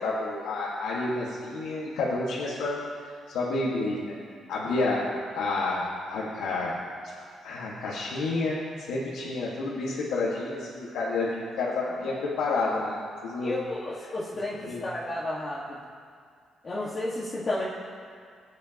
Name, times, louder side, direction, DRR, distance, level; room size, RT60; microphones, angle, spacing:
voice 1, 0.0-2.8 3.3-4.2 4.5-5.0 5.3-5.8 6.1-6.8 7.0-7.1 7.4-13.0 13.2-13.6 14.0-14.1 14.6-14.8, left 3 dB, 90° left, -6 dB, 1.8 m, -29 dB
voice 2, 13.4-15.8 16.6-17.6, left 2 dB, 35° left, -8 dB, 1.8 m, -32 dB
21.0 x 8.8 x 3.0 m, 2.1 s
cardioid pair, 95°, 0 cm